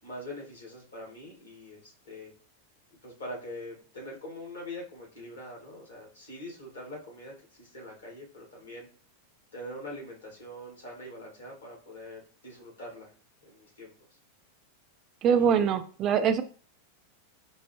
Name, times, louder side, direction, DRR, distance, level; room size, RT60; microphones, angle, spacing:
voice 1, 0.0-2.3 2.9-8.9 9.5-13.1 13.4-13.9 15.4-15.6, left 1 dB, 70° left, -2 dB, 1.7 m, -43 dB
voice 2, 15.2-16.4, right 7 dB, 30° right, 9 dB, 0.4 m, -23 dB
5.3 x 2.0 x 3.1 m, 0.40 s
figure-of-eight pair, 90°, 0 cm